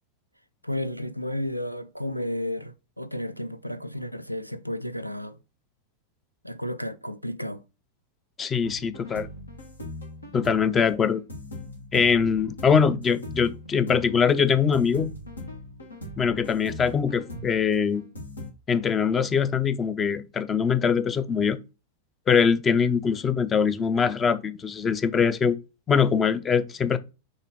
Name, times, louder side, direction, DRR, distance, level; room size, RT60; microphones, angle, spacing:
voice 1, 0.6-5.4 6.4-7.6, left 1 dB, 90° right, 0.4 m, -32 dB
voice 2, 8.4-9.3 10.3-11.2 11.9-15.1 16.2-18.0 18.7-21.6 22.3-25.6 25.9-27.0, left 6 dB, 20° left, 0.5 m, -22 dB
sound 1, 8.6-18.5, left 1 dB, 80° left, 1.5 m, -40 dB
6.3 x 3.0 x 5.1 m
figure-of-eight pair, 90°, 0 cm